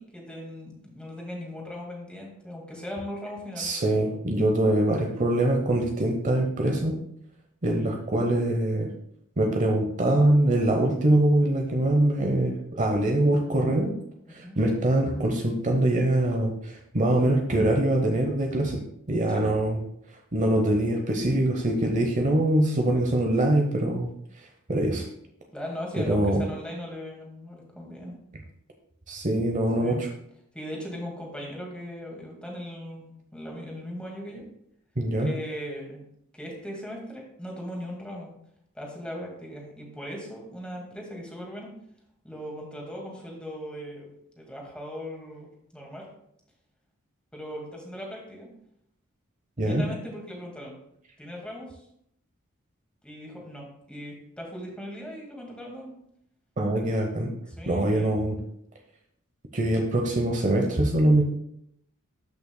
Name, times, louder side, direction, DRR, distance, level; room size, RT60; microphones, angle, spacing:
voice 1, 0.0-3.7 14.3-14.6 19.3-19.5 25.5-28.2 29.8-30.1 30.5-34.5 35.2-36.0 36.3-38.3 38.7-41.7 42.2-44.1 44.4-46.1 47.3-48.5 49.6-50.7 51.2-51.8 53.0-55.9 57.6-58.1, equal, 5° left, -1 dB, 1.9 m, -38 dB
voice 2, 3.6-7.0 7.6-8.9 9.4-13.9 14.3-18.8 19.1-19.8 20.3-24.1 24.7-25.1 26.0-26.4 29.1-30.1 35.0-35.3 49.6-49.9 56.6-57.3 57.7-58.4 59.5-61.2, right 1 dB, 35° right, 2 dB, 0.8 m, -23 dB
13.0 x 5.8 x 2.2 m, 0.73 s
head